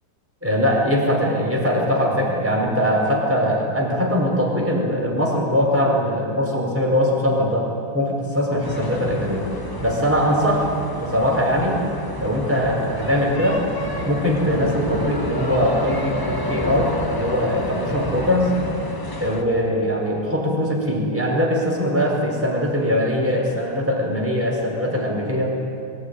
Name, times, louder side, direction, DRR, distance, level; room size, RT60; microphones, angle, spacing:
voice 1, 0.4-9.5 9.8-10.7 11.0-11.8 12.2-13.6 14.0-18.5 19.2-25.5, equal, 5° right, -1 dB, 4.8 m, -21 dB
sound 1, 8.6-19.4, left 1 dB, 15° left, 1.3 m, -30 dB
23.0 x 18.0 x 9.8 m, 2.6 s
omnidirectional pair, 2.1 m